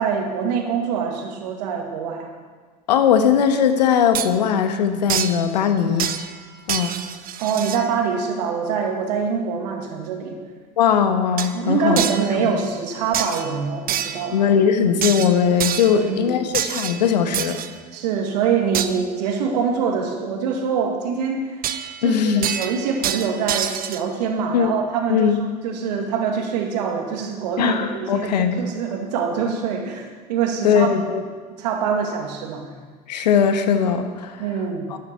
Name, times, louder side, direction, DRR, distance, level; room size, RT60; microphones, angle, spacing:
voice 1, 0.0-2.3 7.4-10.4 11.5-14.4 15.9-16.4 17.9-21.6 22.0-25.3 25.6-30.9 31.6-32.6 34.4-34.9, right 6 dB, 75° right, 3 dB, 2.2 m, -24 dB
voice 2, 2.9-6.1 6.7-6.9 10.8-12.0 14.3-17.6 22.0-22.5 24.5-24.7 25.1-25.4 27.6-28.6 30.6-31.2 33.1-34.4 34.9-35.0, left 7 dB, 85° left, 8 dB, 1.3 m, -19 dB
sound 1, 4.1-4.3 5.1-5.5 6.0-6.4 6.7-7.9 11.4-11.6 12.0-12.3 13.1-13.5 13.9-14.3 15.0-16.0 16.5-17.7 18.7-18.9 21.6-22.1 22.4-24.0, right 10 dB, 45° right, 1.0 m, -26 dB
12.0 x 11.0 x 6.9 m, 1.5 s
hypercardioid pair, 75°, 21 cm